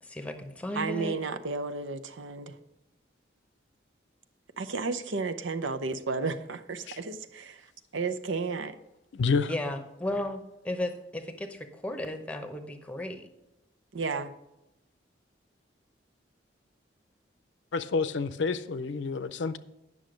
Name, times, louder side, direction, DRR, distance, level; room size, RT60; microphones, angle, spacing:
voice 1, 0.0-1.2 9.5-13.3, left 1 dB, 5° left, 0.8 m, -35 dB
voice 2, 0.7-2.5 4.6-7.6 7.9-8.7 13.9-14.3, right 4 dB, 90° right, 0.7 m, -32 dB
voice 3, 9.1-9.5 17.7-19.6, left 4 dB, 75° left, 0.5 m, -28 dB
9.5 x 6.3 x 5.1 m
head